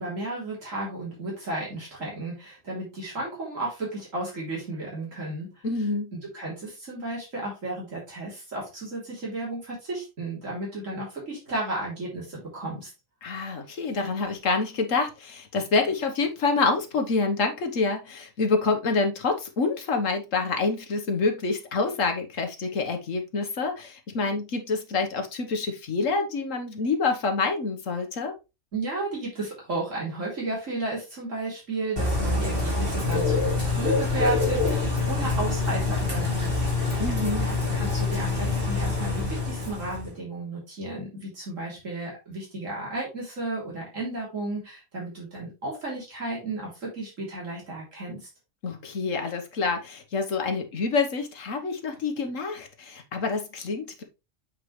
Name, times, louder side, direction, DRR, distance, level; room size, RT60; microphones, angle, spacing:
voice 1, 0.0-5.5 6.1-12.9 28.7-48.3, right 2 dB, 75° right, 3.6 m, -33 dB
voice 2, 5.6-6.1 13.2-28.3 37.0-37.5 48.6-54.0, left 4 dB, 75° left, 1.6 m, -27 dB
Bird / Rain, 32.0-40.1, left 3 dB, 45° right, 2.8 m, -26 dB
8.0 x 4.6 x 3.2 m
omnidirectional pair, 1.3 m